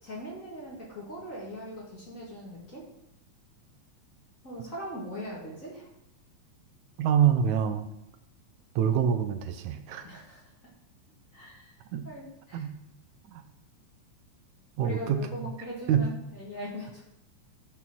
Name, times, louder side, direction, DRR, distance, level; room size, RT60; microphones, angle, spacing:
voice 1, 0.0-2.9 4.4-5.9 10.0-10.7 11.3-12.7 14.8-17.1, equal, 30° left, -4 dB, 2.3 m, -41 dB
voice 2, 7.0-7.9 8.8-10.2 11.9-12.1 12.5-12.7 13.3-13.4 14.8-15.5 15.9-16.1, right 8 dB, 80° right, 8 dB, 2.1 m, -26 dB
12.0 x 5.7 x 6.1 m, 0.86 s
omnidirectional pair, 3.4 m